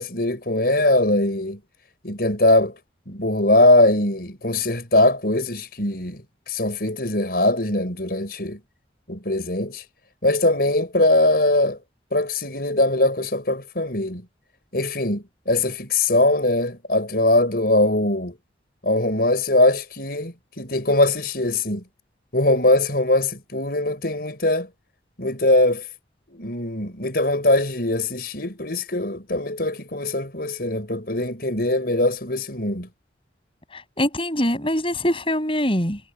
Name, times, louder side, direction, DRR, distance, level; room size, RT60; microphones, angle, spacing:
voice 1, 0.0-1.6 2.0-2.7 3.1-8.6 9.1-9.8 10.2-11.8 12.1-14.2 14.7-18.4 18.8-21.8 22.3-24.7 25.2-25.9 26.3-32.9, left 2 dB, 55° left, 6.2 m, -21 dB
voice 2, 33.7-36.0, left 1 dB, 30° left, 7.9 m, -23 dB
head